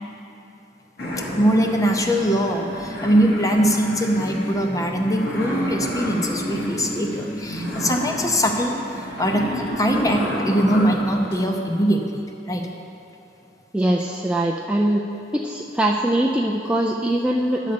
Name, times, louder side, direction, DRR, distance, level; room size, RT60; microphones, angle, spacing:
sound 1, 1.0-11.4, equal, 65° left, 1.8 m, -30 dB
voice 1, 1.4-8.7 9.2-12.7, equal, 20° left, 2 dB, 0.7 m, -21 dB
voice 2, 13.7-15.1 15.3-17.7, right 1 dB, 5° right, -1 dB, 0.3 m, -22 dB
10.5 x 4.1 x 6.7 m, 2.8 s
head